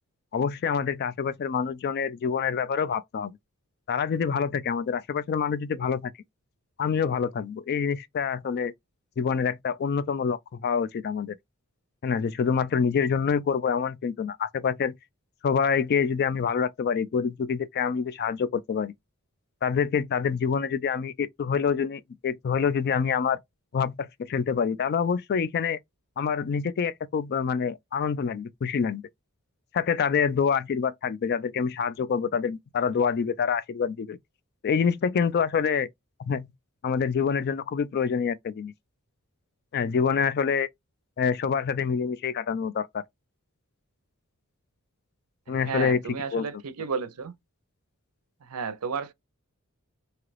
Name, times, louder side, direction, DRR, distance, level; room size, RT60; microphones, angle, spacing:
voice 1, 0.3-3.3 3.9-6.1 6.8-8.7 9.2-11.4 12.0-14.9 15.4-18.9 19.6-23.4 23.7-25.8 26.2-29.0 29.7-34.2 34.6-35.9 36.2-36.5 36.8-38.7 39.7-40.7 41.2-43.0 45.5-46.0 46.3-46.5, left 6 dB, 45° left, 0.3 m, -26 dB
voice 2, 45.6-47.3 48.4-49.1, right 5 dB, 80° right, 0.6 m, -32 dB
2.8 x 2.4 x 3.2 m
head